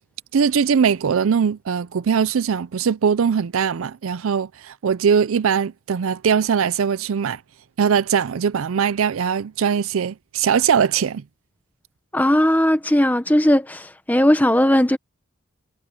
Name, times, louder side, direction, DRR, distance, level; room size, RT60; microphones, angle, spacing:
voice 1, 0.3-7.4 7.8-11.2, right 7 dB, 80° right, 0.4 m, -21 dB
voice 2, 12.1-15.0, left 1 dB, 10° left, 1.1 m, -17 dB
head